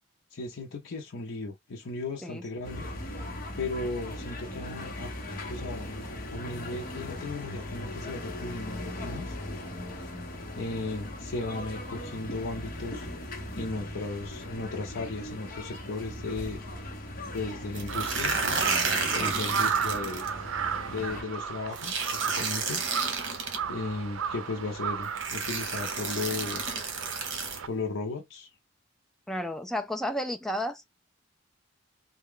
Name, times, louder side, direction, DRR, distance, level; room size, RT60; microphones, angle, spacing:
voice 1, 0.3-2.9 3.6-5.1 5.5-6.0 6.3-9.4 10.5-13.1 13.5-16.6 17.3-18.6 19.1-20.2 20.9-22.8 23.7-26.9 27.7-28.5, left 3 dB, 75° left, 0.6 m, -36 dB
sound 1, 2.6-21.2, left 1 dB, 45° left, 0.9 m, -39 dB
sound 2, 17.7-20.3 21.8-23.6 24.6-24.7 25.1-27.6, right 4 dB, 65° right, 1.0 m, -31 dB
Crow, 17.9-27.7, right 7 dB, 85° right, 0.5 m, -34 dB
voice 2, 29.3-30.8, equal, ahead, 0.3 m, -32 dB
3.3 x 2.2 x 3.6 m
head